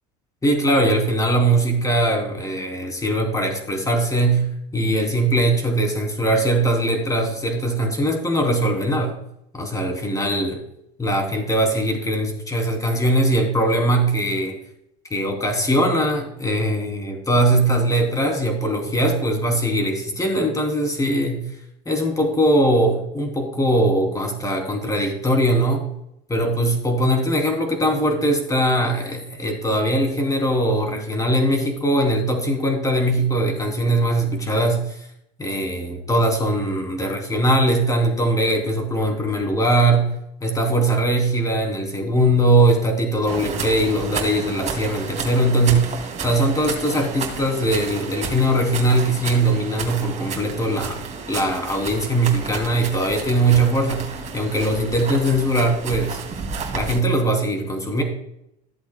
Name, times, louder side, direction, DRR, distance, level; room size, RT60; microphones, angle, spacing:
voice 1, 0.4-4.5 4.7-9.1 9.5-10.6 11.0-14.5 15.1-21.4 21.8-25.8 26.3-35.0 35.4-40.1 40.4-51.0 51.3-54.0 54.3-56.2 56.7-58.0, right 1 dB, 15° left, 3 dB, 3.1 m, -21 dB
sound 1, 43.3-57.0, right 5 dB, 35° right, 2.7 m, -32 dB
15.0 x 7.8 x 2.3 m, 0.76 s
supercardioid pair, 100°, 21 cm